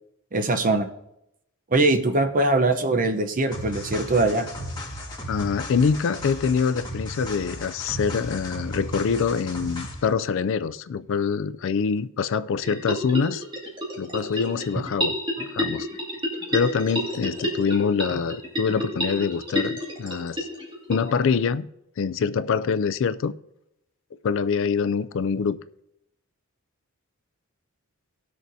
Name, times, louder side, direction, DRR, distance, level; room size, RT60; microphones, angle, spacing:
voice 1, 0.3-0.9 1.7-4.5, right 2 dB, 40° right, 0.7 m, -22 dB
sound 1, 3.5-10.1, left 1 dB, 20° left, 1.8 m, -35 dB
voice 2, 5.3-13.4 14.0-15.1 15.5-15.9 16.5-20.4 20.9-21.7 22.0-23.3 24.2-25.6, left 6 dB, 60° left, 0.4 m, -25 dB
sound 2, 12.6-21.3, equal, 25° right, 2.2 m, -30 dB
18.5 x 6.4 x 2.7 m
head